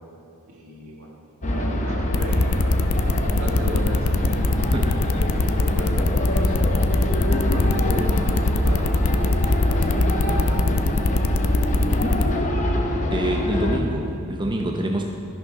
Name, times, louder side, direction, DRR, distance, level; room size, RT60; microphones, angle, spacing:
voice 1, 0.5-4.4 4.8-5.2 5.6-6.6 7.1-11.0, equal, 70° right, -1 dB, 1.7 m, -35 dB
sound 1, 1.4-13.8, left 1 dB, 35° left, 0.9 m, -23 dB
sound 2, 2.1-12.2, left 4 dB, 70° left, 0.4 m, -23 dB
voice 2, 13.1-15.1, right 1 dB, 20° right, 2 dB, 0.6 m, -26 dB
12.5 x 6.3 x 5.4 m, 2.8 s
head